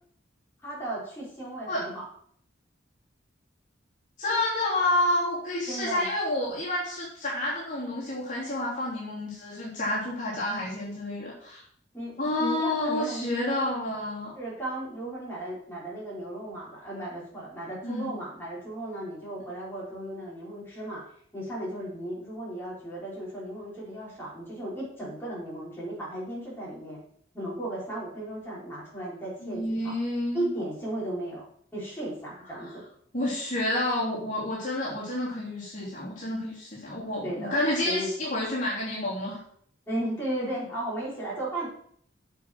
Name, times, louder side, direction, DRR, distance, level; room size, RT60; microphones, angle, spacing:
voice 1, 0.6-2.1 5.7-6.1 11.9-12.1 12.4-13.6 14.3-27.0 27.3-29.9 30.3-31.4 31.7-32.8 37.2-38.1 39.9-41.7, right 1 dB, 10° left, -7 dB, 4.6 m, -35 dB
voice 2, 4.2-11.6 12.2-14.3 17.8-18.1 29.4-30.5 33.1-39.4, left 1 dB, 40° left, -7 dB, 3.4 m, -29 dB
8.2 x 6.6 x 6.1 m, 0.63 s
head